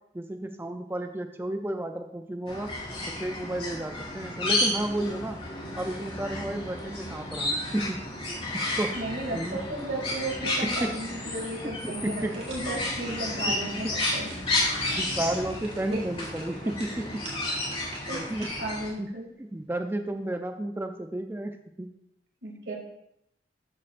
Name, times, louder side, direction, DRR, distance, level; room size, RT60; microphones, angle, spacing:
voice 1, 0.1-2.7 3.2-5.4 5.8-8.0 8.3-8.4 8.8-8.9 9.3-9.6 10.8-11.0 11.6-12.3 13.1-13.2 13.8-13.9 15.0-17.2 18.1-18.5 19.0-19.1 19.4-21.9, right 1 dB, 15° right, 6 dB, 0.4 m, -32 dB
sound 1, 2.5-18.9, left 2 dB, 30° left, 2.7 m, -32 dB
voice 2, 8.9-14.4 15.9-16.0 16.6-16.7 18.1-18.2 18.6-19.3 22.4-22.8, right 1 dB, 80° right, -1 dB, 2.5 m, -34 dB
sound 2, 12.1-18.8 19.2-19.3, right 2 dB, 35° right, 3.0 m, -46 dB
12.5 x 8.6 x 2.5 m, 0.80 s
head